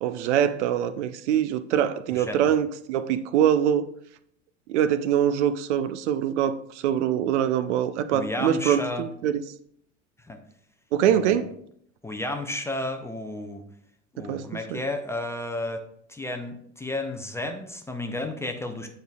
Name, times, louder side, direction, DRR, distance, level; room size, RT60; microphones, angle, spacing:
voice 1, 0.0-3.9 4.7-9.4 10.9-11.5 14.2-14.8, right 9 dB, 65° right, 0.5 m, -24 dB
voice 2, 8.1-9.1 10.2-10.4 11.0-11.4 12.0-13.6 14.1-15.8 16.1-18.9, left 2 dB, 5° left, 0.5 m, -32 dB
8.7 x 5.2 x 2.3 m
figure-of-eight pair, 75°, 38 cm